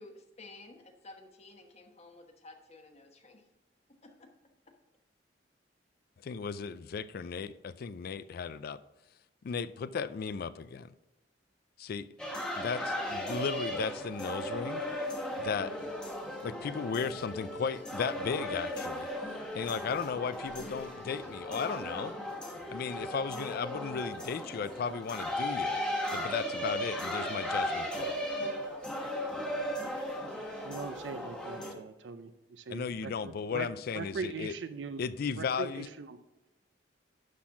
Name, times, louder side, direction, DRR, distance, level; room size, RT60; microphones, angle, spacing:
voice 1, 0.0-3.4 4.0-4.1, left 2 dB, 35° left, 1.2 m, -52 dB
voice 2, 6.2-8.8 9.4-10.9 11.8-12.1 12.6-14.8 15.4-15.7 16.4-19.1 19.5-22.2 22.7-25.8 26.1-28.1 32.7-34.5 35.0-35.9, left 6 dB, 55° left, 0.4 m, -35 dB
sound 1, 12.2-31.7, equal, 5° left, 1.3 m, -36 dB
voice 3, 30.6-33.7 33.9-35.0 35.4-36.2, right 4 dB, 75° right, 0.5 m, -41 dB
11.5 x 4.3 x 4.7 m
head